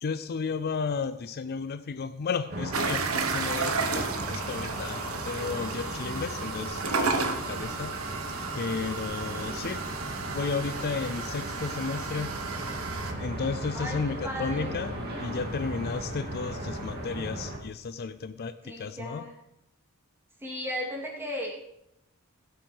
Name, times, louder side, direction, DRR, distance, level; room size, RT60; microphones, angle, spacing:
voice 1, 0.0-8.0 8.5-9.9 10.3-12.4 13.2-19.2, left 5 dB, 45° left, 12 dB, 0.5 m, -33 dB
sound 1, 2.5-17.6, right 1 dB, 45° right, 2.7 m, -37 dB
sound 2, 2.7-13.1, right 4 dB, 70° right, 1.2 m, -33 dB
voice 2, 13.7-14.8 18.6-19.3 20.4-21.5, equal, 10° right, -2 dB, 3.0 m, -35 dB
16.5 x 8.0 x 4.7 m, 0.83 s
head